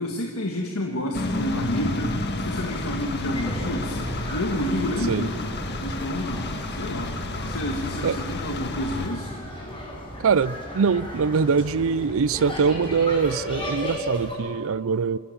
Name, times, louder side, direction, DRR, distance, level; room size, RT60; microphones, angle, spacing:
voice 1, 0.0-4.0 4.3-7.2 7.5-9.3, left 1 dB, 80° left, 1 dB, 1.7 m, -29 dB
sound 1, 1.1-9.1, left 1 dB, 50° left, 1.6 m, -31 dB
sound 2, 3.3-14.3, equal, 25° left, 6.6 m, -35 dB
voice 2, 10.2-15.2, right 5 dB, 65° right, 20 dB, 0.5 m, -23 dB
25.5 x 16.0 x 7.3 m, 2.5 s
head